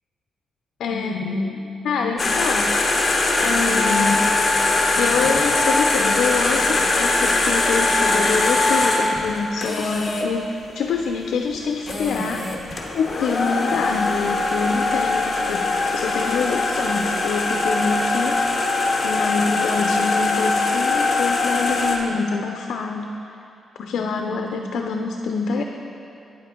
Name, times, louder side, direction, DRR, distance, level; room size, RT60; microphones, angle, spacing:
voice 1, 0.8-2.7 3.4-4.4 5.0-12.4 12.9-18.4 19.0-23.1 23.8-25.6, left 5 dB, 80° left, 3 dB, 0.4 m, -25 dB
sound 1, 2.2-10.3 11.5-11.6 11.9-22.0, left 2 dB, 30° left, 0.8 m, -21 dB
9.2 x 7.5 x 3.7 m, 2.7 s
cardioid pair, 130°, 0 cm